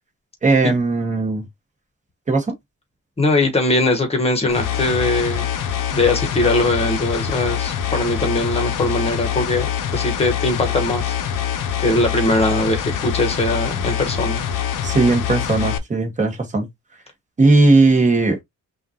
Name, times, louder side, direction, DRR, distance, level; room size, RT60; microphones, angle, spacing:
voice 1, 0.4-1.4 2.3-2.5 14.8-16.7 17.4-18.4, right 3 dB, 20° right, 1.4 m, -17 dB
voice 2, 3.2-5.5 5.9-11.1 11.8-14.4, left 2 dB, 20° left, 1.2 m, -20 dB
sound 1, 4.5-15.8, left 9 dB, 65° left, 0.8 m, -24 dB
5.6 x 2.6 x 2.8 m
cardioid pair, 155°, 34 cm